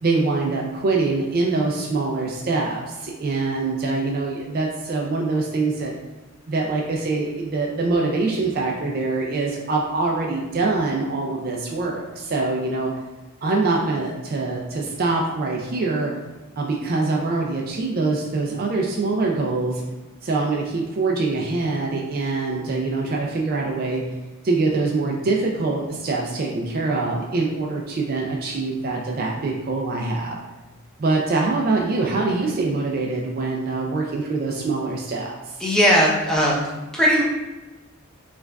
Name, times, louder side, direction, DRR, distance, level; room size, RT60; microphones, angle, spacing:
voice 1, 0.0-5.9 6.5-12.9 13.4-16.1 16.6-19.8 20.2-24.0 24.4-30.4 31.0-35.6, right 3 dB, 40° right, -1 dB, 0.4 m, -24 dB
voice 2, 35.6-36.7 36.9-37.2, equal, 5° left, -5 dB, 0.6 m, -18 dB
4.5 x 2.4 x 2.3 m, 1.1 s
head